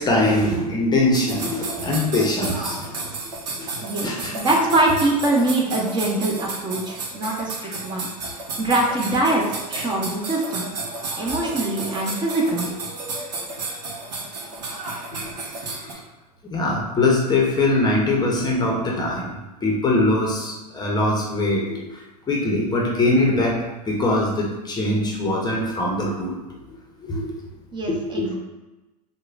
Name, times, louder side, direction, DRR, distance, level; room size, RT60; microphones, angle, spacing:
voice 1, 0.0-3.2 3.6-3.7 4.0-4.4 9.3-9.4 15.2-15.3 15.6-16.0 16.4-22.0 22.3-23.6 23.9-26.4 27.0-27.3 27.9-28.3, left 2 dB, 20° left, -2 dB, 0.6 m, -22 dB
sound 1, 1.1-15.9, right 3 dB, 80° right, 0.7 m, -32 dB
voice 2, 3.8-8.1 8.6-10.7 11.2-12.7 27.7-28.4, right 2 dB, 20° right, -2 dB, 0.7 m, -23 dB
4.7 x 2.1 x 2.4 m, 1.1 s
hypercardioid pair, 95°, 21 cm